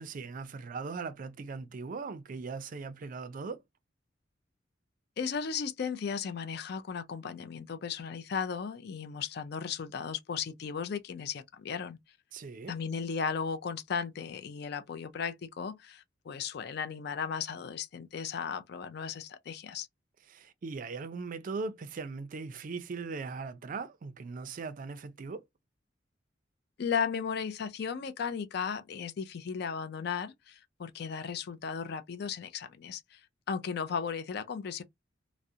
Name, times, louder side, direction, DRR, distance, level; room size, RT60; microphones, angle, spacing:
voice 1, 0.0-3.6 12.3-12.7 20.3-25.4, right 4 dB, 45° right, 0.4 m, -39 dB
voice 2, 5.2-12.0 12.7-19.9 26.8-33.2 33.5-34.8, left 6 dB, 60° left, 0.4 m, -35 dB
2.3 x 2.0 x 2.6 m
head